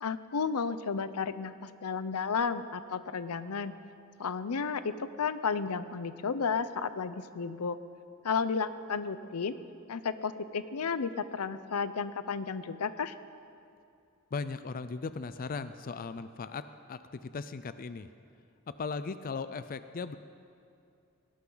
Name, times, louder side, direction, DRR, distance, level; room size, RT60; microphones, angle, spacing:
voice 1, 0.0-3.7 4.2-7.8 8.2-9.6 9.9-13.2, left 5 dB, 85° left, 13 dB, 0.6 m, -33 dB
voice 2, 14.3-16.6 16.9-18.1 18.7-20.2, left 4 dB, 40° left, 12 dB, 0.4 m, -37 dB
19.0 x 17.5 x 3.9 m, 2.6 s
head